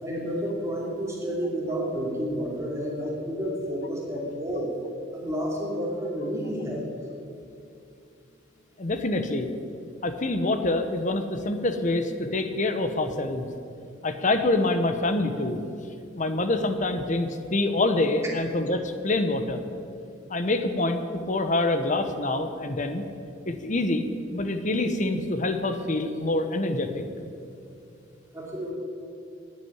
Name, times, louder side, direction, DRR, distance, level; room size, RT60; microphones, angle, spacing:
voice 1, 0.0-4.7 5.1-6.9 28.3-28.7, equal, 15° right, -3 dB, 2.8 m, -30 dB
voice 2, 8.8-9.5 10.0-13.5 14.0-15.6 16.2-19.6 20.3-23.0 23.5-27.0, left 2 dB, 40° left, 8 dB, 1.0 m, -26 dB
10.0 x 9.7 x 9.5 m, 2.5 s
head